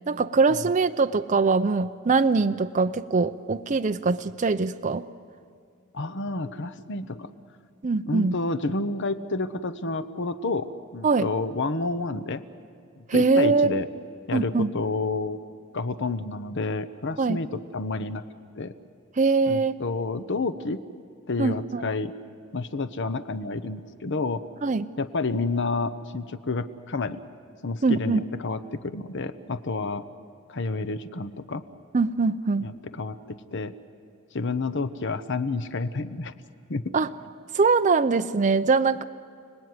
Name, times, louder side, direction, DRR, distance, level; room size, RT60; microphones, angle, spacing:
voice 1, 0.1-5.1 7.8-8.4 11.0-11.3 13.1-13.7 14.3-14.7 17.2-17.4 19.2-19.8 21.4-21.9 24.6-24.8 27.8-28.2 31.9-32.7 36.9-37.1 37.5-39.0, right 4 dB, 35° right, 8 dB, 0.6 m, -22 dB
voice 2, 5.9-7.3 8.1-12.4 13.0-13.9 14.3-15.4 15.7-18.2 18.5-18.7 19.5-20.8 21.3-22.1 22.5-24.4 25.0-27.2 27.6-30.0 30.5-31.6 32.6-33.7 34.3-36.3 36.7-36.9, left 3 dB, 60° left, 12 dB, 0.9 m, -29 dB
30.0 x 20.0 x 9.6 m, 2.3 s
head